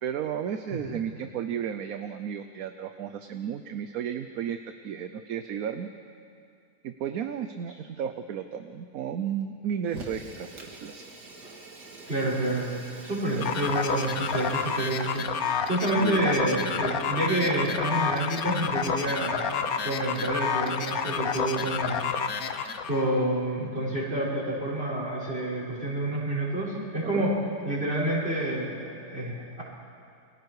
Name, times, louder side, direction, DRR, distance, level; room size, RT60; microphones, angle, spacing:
voice 1, 0.0-4.6 4.8-5.9 6.8-11.0 13.4-13.5 16.0-16.3 27.0-27.3, right 8 dB, 65° right, 8 dB, 1.1 m, -33 dB
voice 2, 0.7-1.0 12.1-12.7 13.0-27.3 27.6-29.6, right 1 dB, 35° right, -5 dB, 6.3 m, -29 dB
Fire, 9.9-15.5, right 3 dB, 80° right, 2.6 m, -45 dB
sound 1, 13.4-23.1, left 7 dB, 65° left, 1.3 m, -30 dB
29.5 x 23.0 x 4.8 m, 2.4 s
omnidirectional pair, 1.8 m